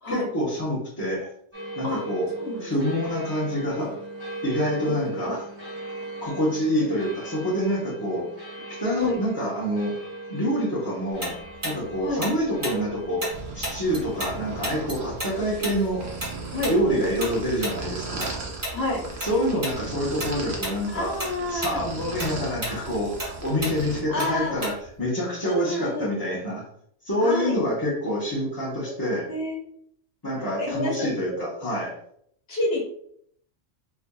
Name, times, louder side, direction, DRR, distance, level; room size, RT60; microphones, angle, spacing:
voice 1, 0.1-1.3 1.8-2.3 2.6-4.0 4.4-5.5 6.2-8.3 8.7-9.9 10.3-11.3 11.6-13.2 13.5-16.1 16.7-18.3 19.2-21.2 21.5-26.6 27.0-29.3 30.2-31.9, equal, 20° left, -8 dB, 0.8 m, -27 dB
sound 1, 1.5-20.9, right 2 dB, 20° right, 1.4 m, -39 dB
voice 2, 2.4-2.7 9.0-9.2 12.0-12.3 16.5-17.0 18.7-19.0 20.9-21.8 24.1-24.5 25.4-26.1 27.2-27.6 29.3-29.6 30.6-31.4 32.5-32.8, left 1 dB, 55° left, -2 dB, 1.2 m, -28 dB
Tick-tock, 11.2-14.4 14.6-19.3 19.6-19.8 20.2-20.8 21.1-25.0, right 1 dB, 40° right, 1.3 m, -33 dB
sound 2, 13.3-24.0, right 3 dB, 60° right, 1.0 m, -37 dB
4.4 x 2.5 x 2.3 m, 0.66 s
omnidirectional pair, 1.3 m